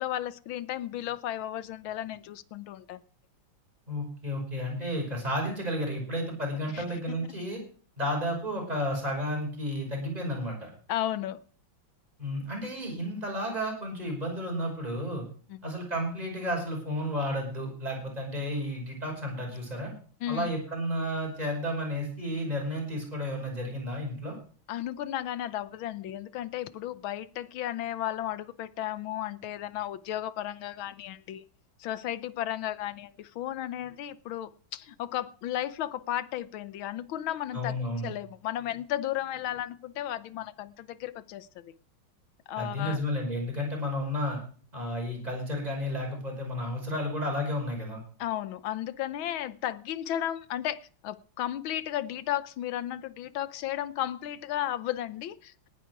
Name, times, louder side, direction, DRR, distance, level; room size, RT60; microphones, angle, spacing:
voice 1, 0.0-3.0 6.7-6.8 10.9-11.4 15.5-15.6 20.2-20.5 24.7-31.4 31.8-37.7 38.0-41.7 42.5-43.0 48.2-55.7, left 12 dB, 80° left, 16 dB, 1.6 m, -34 dB
voice 2, 3.9-7.6 8.0-10.7 12.2-15.3 15.6-19.9 20.3-24.4 37.5-38.1 42.6-44.4 44.7-48.0, equal, 20° right, 1 dB, 5.6 m, -32 dB
19.0 x 10.0 x 4.7 m, 0.43 s
omnidirectional pair, 2.2 m